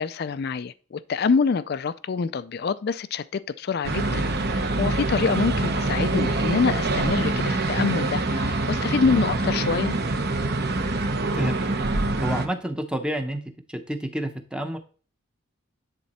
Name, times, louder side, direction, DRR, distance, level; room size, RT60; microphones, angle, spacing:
voice 1, 0.0-10.0, left 5 dB, 50° left, 0.4 m, -26 dB
sound 1, 3.8-12.5, right 2 dB, 50° right, 0.9 m, -25 dB
voice 2, 12.2-13.4 13.7-14.8, right 1 dB, 5° right, 0.7 m, -29 dB
10.0 x 3.8 x 4.2 m
head